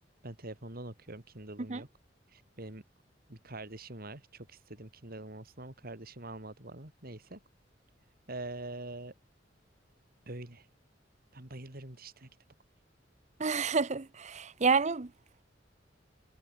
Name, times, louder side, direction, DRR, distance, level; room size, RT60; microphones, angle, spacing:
voice 1, 0.2-1.9 2.3-2.8 3.3-7.4 8.3-9.1 10.3-10.7 11.3-12.3, right 2 dB, 55° right, 2.9 m, -44 dB
voice 2, 13.4-15.1, right 4 dB, 40° right, 0.8 m, -29 dB
head